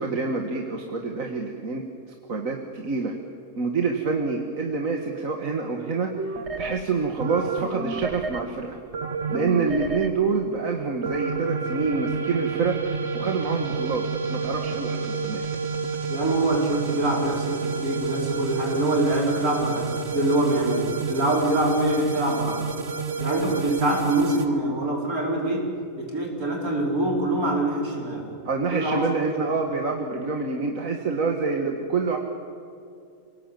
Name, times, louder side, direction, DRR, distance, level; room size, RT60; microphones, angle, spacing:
voice 1, 0.0-1.8 2.3-3.1 3.6-8.8 9.3-14.0 14.3-15.4 28.4-32.2, right 4 dB, 65° right, 2 dB, 2.0 m, -27 dB
sound 1, 6.2-6.8 7.2-8.4 8.9-10.1 11.0-24.5, right 5 dB, 50° right, 1.4 m, -29 dB
voice 2, 16.1-22.6 23.2-25.7 26.0-28.2 28.7-29.1 29.5-29.6, right 1 dB, 85° right, -2 dB, 5.6 m, -25 dB
28.0 x 18.5 x 9.0 m, 2.5 s
omnidirectional pair, 1.5 m